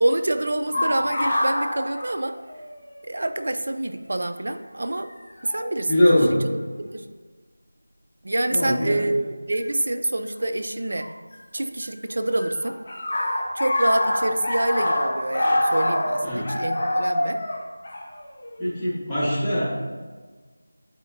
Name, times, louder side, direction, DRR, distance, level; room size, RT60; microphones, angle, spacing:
voice 1, 0.0-2.3 3.0-5.1 5.4-6.0 6.8-7.0 8.2-11.1 11.5-12.8 13.5-17.4, right 1 dB, 60° right, 8 dB, 0.5 m, -26 dB
sound 1, 0.7-2.8 3.1-3.2 4.2-4.4 5.4-5.7 6.4-6.9 9.5-9.6 11.0-11.9 12.1-18.7, left 1 dB, 40° left, 1.1 m, -25 dB
voice 2, 5.9-6.4 8.5-9.0 16.2-16.5 18.6-19.7, left 1 dB, 5° left, -15 dB, 1.6 m, -21 dB
9.0 x 4.3 x 2.6 m, 1.4 s
figure-of-eight pair, 170°, 0 cm